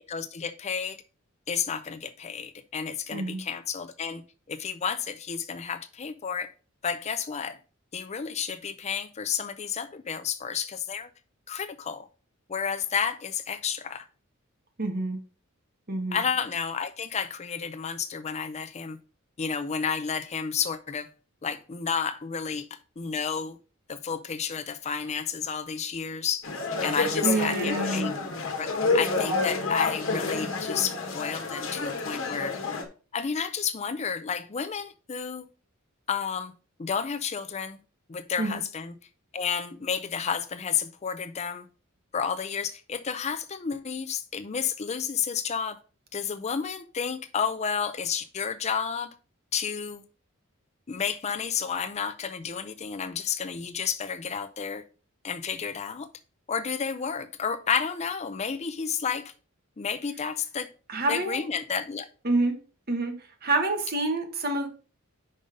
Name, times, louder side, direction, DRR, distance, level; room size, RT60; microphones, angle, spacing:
voice 1, 0.1-1.0 1.5-4.2 4.5-6.5 6.8-7.6 7.9-11.1 11.5-12.1 12.5-14.1 16.1-19.0 19.4-21.1 21.4-23.6 23.9-26.5 26.8-28.1 28.6-28.7 28.9-32.6 33.1-35.5 36.1-36.5 36.8-37.8 38.1-38.9 39.3-41.7 42.1-45.8 46.1-49.1 49.5-50.0 50.9-54.8 55.2-56.1 56.5-59.3 59.8-60.7 61.1-62.1, left 6 dB, 30° left, 0.5 m, -31 dB
voice 2, 3.1-3.4 14.8-15.2 15.9-16.2 27.2-28.1 38.4-38.6 60.9-61.4 62.2-62.6 62.9-64.7, right 2 dB, 45° right, 1.4 m, -27 dB
sound 1, 26.4-32.8, left 3 dB, 65° left, 1.3 m, -29 dB
5.4 x 5.3 x 5.0 m
head